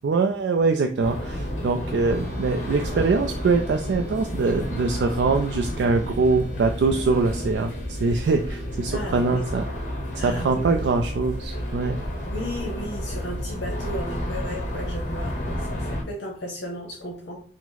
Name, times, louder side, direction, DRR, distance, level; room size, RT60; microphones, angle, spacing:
voice 1, 0.0-9.6 10.2-12.0, right 4 dB, 70° right, 5 dB, 0.3 m, -23 dB
sound 1, 1.0-16.0, equal, 40° left, 1.0 m, -31 dB
sound 2, 2.1-16.0, right 2 dB, 90° right, 0.8 m, -50 dB
voice 2, 8.9-9.5 10.2-10.8 12.2-17.4, equal, 65° left, -1 dB, 0.8 m, -34 dB
4.6 x 2.0 x 4.0 m, 0.43 s
head